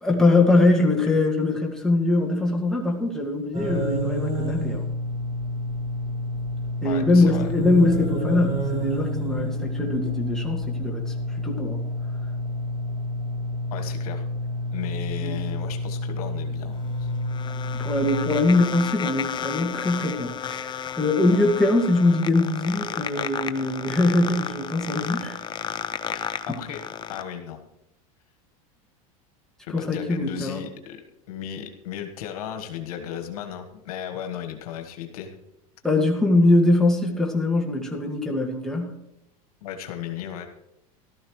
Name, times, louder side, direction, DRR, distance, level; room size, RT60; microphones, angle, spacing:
voice 1, 0.0-4.9 6.8-11.9 15.2-15.4 17.8-25.4 26.0-26.2 26.5-26.6 29.7-30.6 35.8-39.0, left 2 dB, 5° left, -1 dB, 1.9 m, -22 dB
sound 1, 3.5-18.4, left 1 dB, 30° right, 4.6 m, -29 dB
voice 2, 6.8-7.5 13.7-14.2 14.7-17.1 25.0-25.1 26.1-26.8 27.1-27.6 29.7-31.0 31.3-35.3 39.6-40.5, left 9 dB, 85° left, 5 dB, 1.5 m, -35 dB
sound 2, 16.7-27.2, left 8 dB, 25° left, 0.6 m, -33 dB
14.5 x 12.5 x 3.2 m, 0.86 s
supercardioid pair, 115°, 19 cm